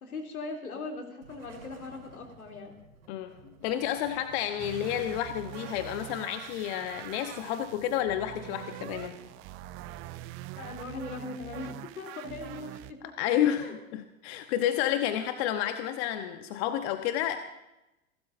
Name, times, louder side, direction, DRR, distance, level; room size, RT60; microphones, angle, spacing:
voice 1, 0.0-2.7 10.5-13.1 13.6-13.8, left 3 dB, 85° left, 2 dB, 3.2 m, -40 dB
sound 1, 1.2-11.0, right 3 dB, 90° right, 6.5 m, -54 dB
voice 2, 3.6-9.2 13.2-17.4, left 11 dB, 50° left, 8 dB, 1.1 m, -30 dB
sound 2, 4.6-12.9, right 16 dB, 30° right, 0.5 m, -44 dB
28.0 x 12.5 x 2.6 m, 0.92 s
hypercardioid pair, 105°, 42 cm